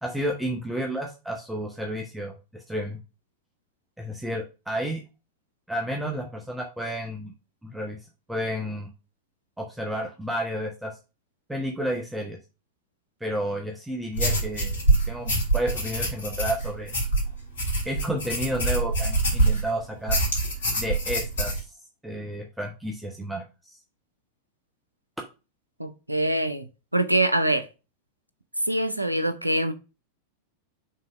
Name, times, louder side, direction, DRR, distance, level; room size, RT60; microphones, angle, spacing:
voice 1, 0.0-3.0 4.0-5.0 5.7-7.3 7.6-8.0 8.3-8.9 9.6-10.9 11.5-12.4 13.2-16.9 17.8-20.2 20.8-21.7 22.0-23.8, equal, 5° right, 1.1 m, -31 dB
sound 1, 14.1-19.7 20.1-21.6, right 2 dB, 70° left, 3.4 m, -25 dB
voice 2, 25.8-26.7 26.9-27.7 28.7-29.7, right 1 dB, 85° right, 0.7 m, -24 dB
5.6 x 3.9 x 5.0 m
figure-of-eight pair, 90°, 0 cm